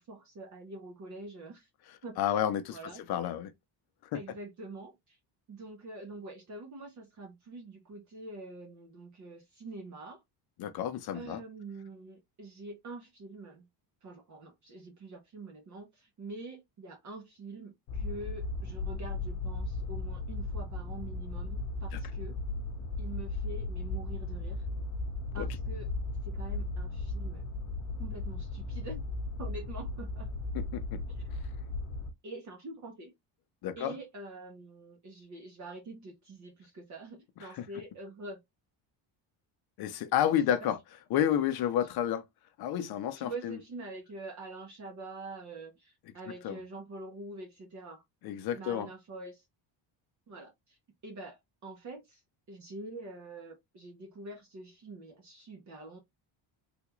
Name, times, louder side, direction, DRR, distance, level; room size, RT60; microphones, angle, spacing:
voice 1, 0.0-1.7 2.0-2.4 2.7-3.0 4.1-5.2 5.5-10.2 11.1-13.7 14.0-22.4 23.0-24.6 25.3-25.9 26.2-27.5 28.0-29.0 29.4-30.3 31.1-31.3 32.2-33.1 33.8-38.4 40.3-40.7 43.2-48.0 48.5-49.5 50.3-50.8 51.0-52.2 52.5-56.0, right 2 dB, 40° right, 0.7 m, -45 dB
voice 2, 2.2-2.8 3.1-3.5 4.1-4.2 10.6-11.4 25.4-25.5 30.5-31.0 33.6-33.9 37.6-37.7 39.8-40.8 41.1-42.2 42.6-43.5 46.4-46.6 48.2-48.9, left 10 dB, 55° left, 0.6 m, -30 dB
sound 1, 17.9-32.1, left 2 dB, 85° left, 0.8 m, -36 dB
3.5 x 2.4 x 2.9 m
cardioid pair, 180°, 47 cm